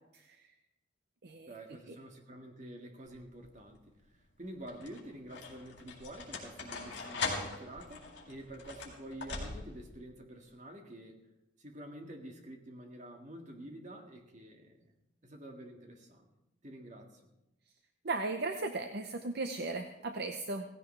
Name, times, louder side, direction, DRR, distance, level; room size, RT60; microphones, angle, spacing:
voice 1, 1.5-3.8 4.1-11.2 11.6-14.8 15.2-16.3 16.6-17.2, right 1 dB, 40° right, 2 dB, 1.9 m, -48 dB
sound 1, 3.1-3.6 4.4-9.9, left 4 dB, 65° left, 3.8 m, -41 dB
voice 2, 18.0-20.7, right 3 dB, 55° right, 6 dB, 0.7 m, -36 dB
16.5 x 16.0 x 3.3 m, 0.90 s
head